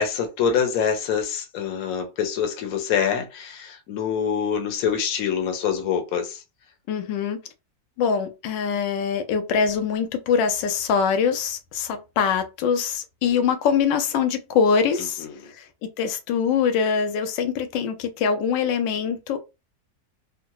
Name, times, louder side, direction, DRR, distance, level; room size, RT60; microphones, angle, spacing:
voice 1, 0.0-6.4, left 7 dB, 60° left, 1.1 m, -25 dB
voice 2, 6.9-7.4 8.0-15.7 16.0-19.4, left 6 dB, 85° left, 1.3 m, -23 dB
3.6 x 2.1 x 2.9 m
omnidirectional pair, 1.9 m